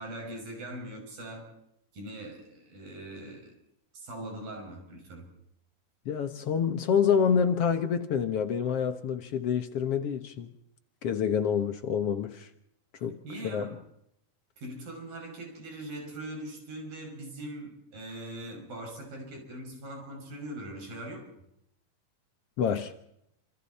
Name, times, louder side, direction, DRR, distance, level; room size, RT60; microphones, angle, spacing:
voice 1, 0.0-1.5 1.9-3.5 3.9-5.3 13.2-13.7 14.6-21.2, right 1 dB, 75° right, 7.7 m, -41 dB
voice 2, 6.1-10.5 11.0-12.5 13.0-13.2 13.4-13.8 22.6-22.9, left 7 dB, 60° left, 1.7 m, -27 dB
27.5 x 27.0 x 4.3 m
omnidirectional pair, 4.1 m